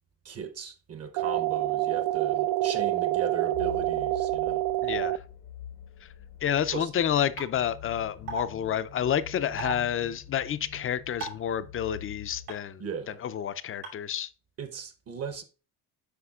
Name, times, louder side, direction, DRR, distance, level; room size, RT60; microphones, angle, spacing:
voice 1, 0.2-4.6 6.7-6.9 12.8-13.2 14.6-15.4, right 6 dB, 40° right, 0.9 m, -37 dB
sound 1, 1.2-5.2, right 15 dB, 65° right, 0.5 m, -27 dB
sound 2, 3.5-12.5, left 8 dB, 90° left, 1.2 m, -45 dB
voice 2, 4.8-5.2 6.4-12.8 13.2-14.3, left 9 dB, 35° left, 0.4 m, -29 dB
sound 3, 7.4-7.5 8.3-8.4 9.6-9.7 11.2-11.5 12.5-12.6 13.8-13.9, right 6 dB, 85° right, 2.8 m, -34 dB
8.1 x 5.4 x 2.4 m
cardioid pair, 85°, 38 cm